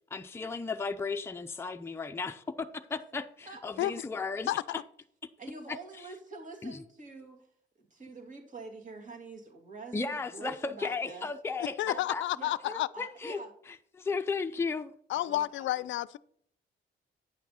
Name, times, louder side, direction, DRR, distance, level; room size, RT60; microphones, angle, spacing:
voice 1, 0.1-4.5 5.7-6.1 6.6-6.8 9.9-12.2 12.7-13.4 13.9-14.9, left 4 dB, 10° left, 0.5 m, -35 dB
voice 2, 3.5-3.9 5.4-7.5 7.8-11.3 11.8-12.0 12.3-12.6 12.9-13.5 15.1-15.8, right 3 dB, 40° right, 2.4 m, -46 dB
voice 3, 11.8-12.9 15.1-16.2, left 15 dB, 75° left, 0.4 m, -30 dB
9.2 x 5.9 x 4.2 m
cardioid pair, 90°, 20 cm